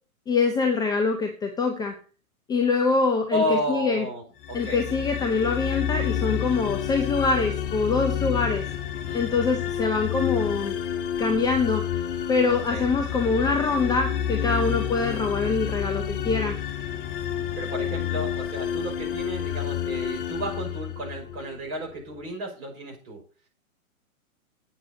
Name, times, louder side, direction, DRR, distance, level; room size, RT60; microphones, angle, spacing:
voice 1, 0.3-1.9 2.5-4.0 4.5-8.7 9.1-10.7 11.2-11.8 12.3-16.6, left 4 dB, 10° left, 5 dB, 0.7 m, -24 dB
voice 2, 3.3-4.8 9.1-9.5 12.5-12.9 14.5-14.8 17.6-23.2, equal, 40° right, 1 dB, 5.8 m, -32 dB
sound 1, 4.4-21.6, left 9 dB, 40° left, 1.0 m, -29 dB
8.4 x 6.2 x 7.1 m, 0.38 s
figure-of-eight pair, 120°, 43 cm